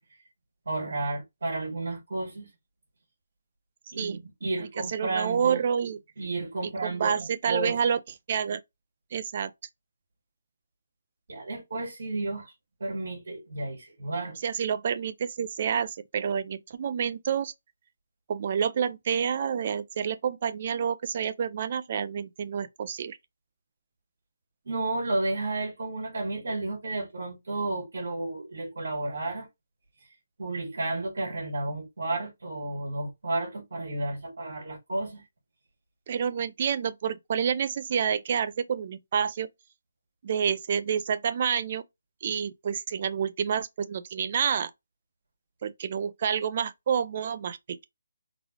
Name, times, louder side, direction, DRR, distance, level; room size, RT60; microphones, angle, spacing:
voice 1, 0.7-2.5 3.9-5.6 6.2-7.8 11.3-12.5 12.8-14.4 24.7-29.5 30.4-35.2, right 2 dB, 75° right, 2.1 m, -32 dB
voice 2, 4.9-6.0 6.6-8.0 8.3-8.6 9.1-9.5 14.4-17.5 18.3-23.2 36.1-39.5 40.2-41.8 42.2-44.7 45.6-47.8, right 7 dB, 35° right, 0.3 m, -28 dB
3.9 x 2.3 x 2.9 m
hypercardioid pair, 170°, 0 cm